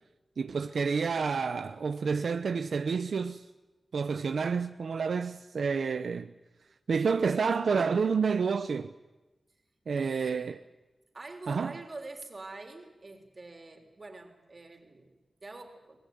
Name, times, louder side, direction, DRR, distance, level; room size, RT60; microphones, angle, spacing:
voice 1, 0.4-3.5 3.9-6.3 6.9-8.9 9.9-10.6 11.5-11.8, right 5 dB, 75° right, 0.8 m, -29 dB
voice 2, 9.9-10.5 11.1-16.0, right 2 dB, 35° right, 3.7 m, -46 dB
24.5 x 20.5 x 9.4 m
wide cardioid pair, 155°, 0 cm